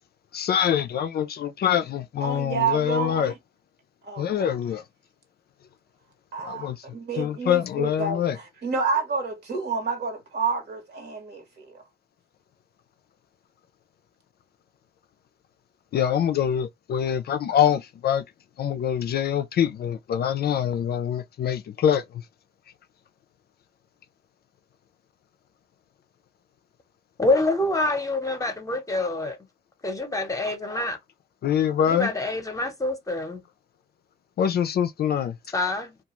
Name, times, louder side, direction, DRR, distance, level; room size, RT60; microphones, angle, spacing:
voice 1, 0.3-3.3 4.2-4.8 6.4-6.8 7.2-8.4 15.9-18.2 18.6-22.0 31.4-32.1 34.4-35.3, left 9 dB, 55° left, 0.4 m, -24 dB
voice 2, 2.2-3.4 4.0-4.5 6.3-11.8, right 5 dB, 55° right, 1.2 m, -29 dB
voice 3, 27.2-29.4 29.8-31.0 31.9-33.4 35.5-36.0, left 2 dB, 15° left, 0.8 m, -26 dB
2.3 x 2.3 x 2.9 m
cardioid pair, 90°, 20 cm